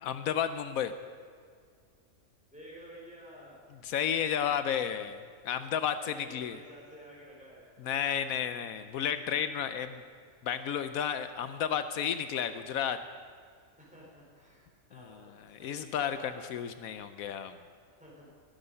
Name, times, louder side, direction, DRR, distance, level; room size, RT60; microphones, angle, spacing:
voice 1, 0.0-0.9 3.8-6.6 7.8-10.0 10.4-13.0 15.5-17.5, left 8 dB, 80° left, 10 dB, 1.1 m, -32 dB
voice 2, 2.5-3.6 6.0-7.7 13.8-16.5 18.0-18.3, equal, 5° right, -5 dB, 5.0 m, -51 dB
21.0 x 10.5 x 5.5 m, 2.1 s
omnidirectional pair, 1.4 m